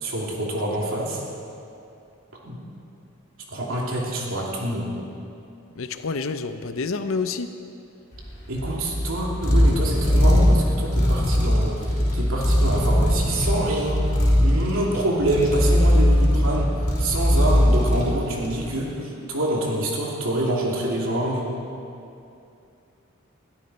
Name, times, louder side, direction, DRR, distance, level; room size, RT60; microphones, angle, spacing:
voice 1, 0.0-1.2 2.4-2.6 3.5-4.9 8.5-16.7 17.0-21.5, right 1 dB, 80° right, -3 dB, 2.8 m, -26 dB
voice 2, 5.8-7.5, left 4 dB, 80° left, 9 dB, 0.7 m, -28 dB
Pen on microphone, 8.1-18.7, equal, 35° left, 4.0 m, -20 dB
21.5 x 13.0 x 4.3 m, 2.7 s
head